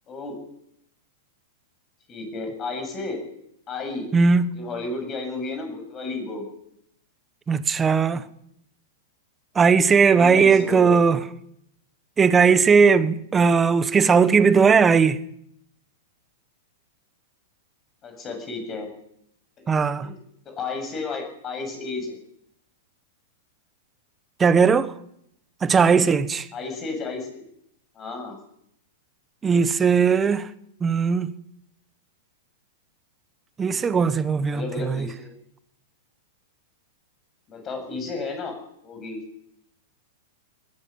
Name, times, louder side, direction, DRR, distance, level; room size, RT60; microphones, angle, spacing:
voice 1, 0.1-0.4 2.1-3.2 3.7-4.1 4.5-6.5 10.1-11.0 18.0-18.9 19.6-20.2 20.4-22.2 26.5-27.4 28.0-28.4 34.5-35.4 37.5-38.6 38.8-39.2, left 3 dB, 20° left, 7.6 m, -32 dB
voice 2, 4.1-4.6 7.5-8.2 9.5-11.2 12.2-15.2 19.7-20.1 24.4-24.9 25.6-26.5 29.4-30.5 30.8-31.3 33.6-35.1, right 5 dB, 15° right, 1.2 m, -18 dB
20.5 x 17.5 x 8.9 m
supercardioid pair, 155°, 0 cm